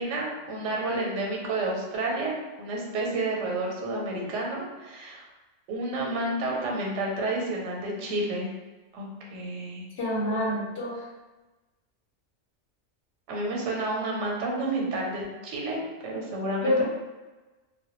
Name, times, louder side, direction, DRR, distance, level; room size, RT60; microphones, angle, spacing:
voice 1, 0.0-5.2 5.7-8.5 8.9-9.8 13.3-16.9, right 2 dB, 90° right, -1 dB, 0.9 m, -30 dB
voice 2, 10.0-10.9 16.6-16.9, left 1 dB, 65° left, -5 dB, 0.9 m, -26 dB
2.2 x 2.1 x 2.9 m, 1.2 s
omnidirectional pair, 1.2 m